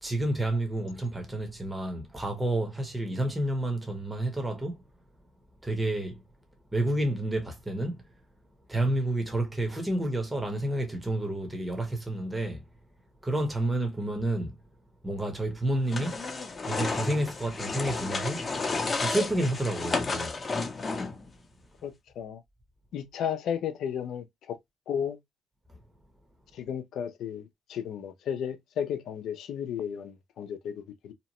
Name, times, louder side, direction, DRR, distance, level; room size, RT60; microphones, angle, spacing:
voice 1, 0.0-4.8 5.6-6.2 6.7-8.0 8.7-12.6 13.2-14.5 15.0-16.2 16.7-18.5 19.0-20.4, right 1 dB, 10° right, 0.9 m, -30 dB
sound 1, 15.9-21.3, left 3 dB, 30° left, 0.7 m, -32 dB
voice 2, 21.8-22.4 22.9-24.6 24.9-25.2 26.5-31.1, left 8 dB, 80° left, 0.5 m, -34 dB
2.8 x 2.1 x 2.8 m
cardioid pair, 90°, 0 cm